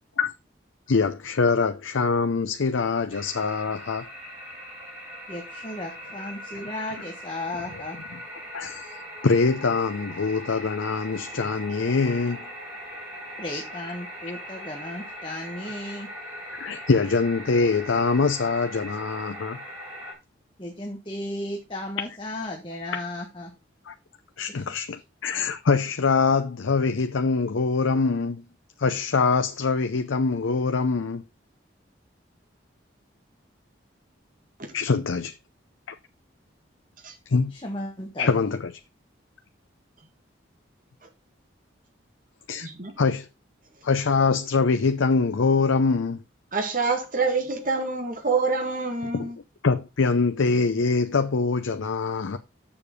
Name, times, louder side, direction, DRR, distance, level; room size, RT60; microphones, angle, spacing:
voice 1, 0.9-4.1 7.7-7.8 8.5-8.9 9.2-12.5 16.5-19.6 23.9-24.0 24.4-28.4 28.8-31.2 34.7-35.4 37.3-37.5 38.2-38.7 42.5-42.7 43.0-43.3 43.8-46.2 49.1-49.3 49.6-52.4, left 4 dB, 90° left, 0.6 m, -24 dB
sound 1, 3.1-20.1, equal, 15° right, 4.4 m, -40 dB
voice 2, 5.3-8.0 13.4-16.1 20.6-23.5 24.5-24.6 37.5-38.3, left 1 dB, 25° left, 1.5 m, -35 dB
voice 3, 42.6-43.0 46.5-49.4, right 4 dB, 45° right, 1.8 m, -26 dB
7.1 x 6.8 x 5.1 m
head